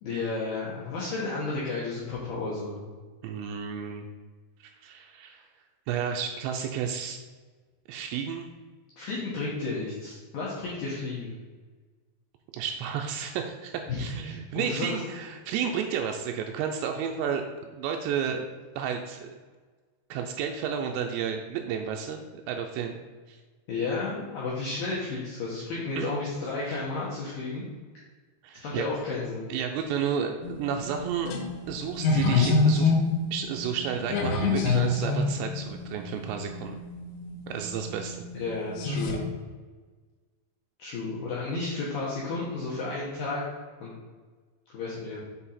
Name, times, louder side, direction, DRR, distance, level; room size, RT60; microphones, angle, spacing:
voice 1, 0.0-2.8 9.0-11.3 13.9-15.0 23.7-27.7 28.5-29.5 38.3-39.3 40.8-43.4 43.8-43.9 44.7-45.2, left 3 dB, 70° left, -7 dB, 2.2 m, -32 dB
voice 2, 3.2-4.0 4.6-5.4 5.9-7.2 7.9-8.5 12.5-18.4 18.8-19.4 20.1-23.0 23.3-23.4 26.0-26.1 26.7-26.8 28.4-28.9 29.5-31.3 31.7-32.9 33.3-36.8 37.5-38.3, right 7 dB, 90° right, 3 dB, 2.5 m, -32 dB
sound 1, 30.4-39.2, left 4 dB, 85° left, 3.4 m, -28 dB
7.7 x 4.5 x 4.2 m, 1.4 s
omnidirectional pair, 5.6 m